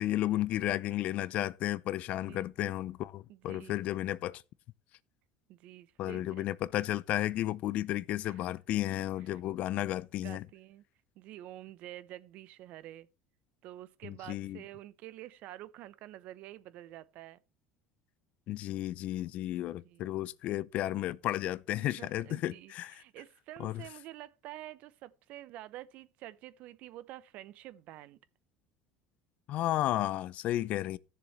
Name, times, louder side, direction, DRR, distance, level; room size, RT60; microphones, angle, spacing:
voice 1, 0.0-4.4 6.0-10.4 14.0-14.6 18.5-23.0 23.6-23.8 29.5-31.0, left 14 dB, 55° left, 0.5 m, -33 dB
voice 2, 3.3-3.9 5.5-6.5 8.2-8.4 9.2-9.4 10.2-10.8 11.2-13.1 13.6-17.4 19.8-20.1 21.8-28.2, right 14 dB, 60° right, 0.7 m, -48 dB
15.5 x 6.9 x 3.1 m
supercardioid pair, 110°, 3 cm